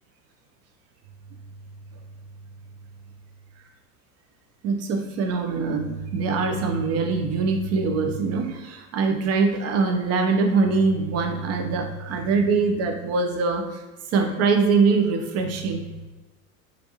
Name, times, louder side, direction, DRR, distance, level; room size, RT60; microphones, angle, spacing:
voice 1, 4.6-13.6 14.1-16.1, right 4 dB, 35° right, 4 dB, 0.5 m, -23 dB
3.3 x 2.6 x 2.7 m, 1.1 s
hypercardioid pair, 80°, 46 cm